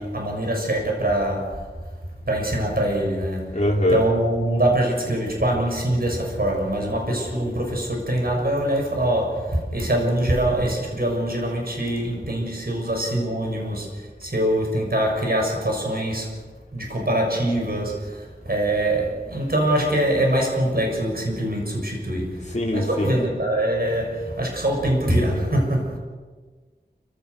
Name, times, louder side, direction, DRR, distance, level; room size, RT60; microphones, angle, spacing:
voice 1, 0.0-1.6 2.3-3.6 3.9-16.3 16.7-26.0, right 1 dB, 55° right, 0 dB, 6.7 m, -24 dB
voice 2, 3.5-4.0 22.5-23.1, left 1 dB, 40° left, -2 dB, 3.2 m, -22 dB
29.5 x 16.5 x 6.6 m, 1.4 s
wide cardioid pair, 50°, 18 cm